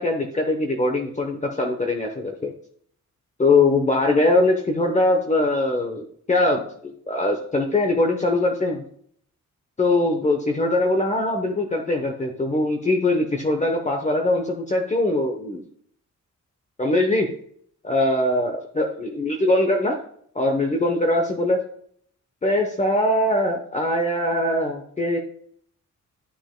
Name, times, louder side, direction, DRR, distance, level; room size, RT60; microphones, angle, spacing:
voice 1, 0.0-2.5 3.4-8.8 9.8-15.6 16.8-17.3 17.8-20.0 20.3-21.6 22.4-25.2, left 2 dB, 25° left, 3 dB, 0.9 m, -22 dB
12.5 x 6.1 x 2.2 m, 0.63 s
wide cardioid pair, 125°, 31 cm